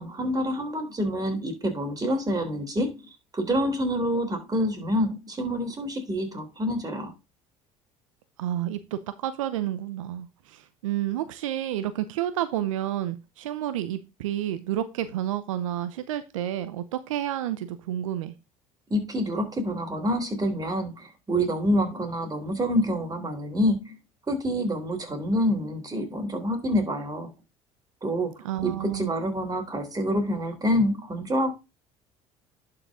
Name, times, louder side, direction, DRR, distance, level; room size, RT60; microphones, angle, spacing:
voice 1, 0.0-7.1 18.9-24.0 24.3-27.3 28.0-31.5, equal, 25° right, 3.5 m, -27 dB
voice 2, 8.4-18.3 28.4-29.1, right 12 dB, 85° right, 0.6 m, -30 dB
11.5 x 4.9 x 3.7 m
hypercardioid pair, 70°, 16 cm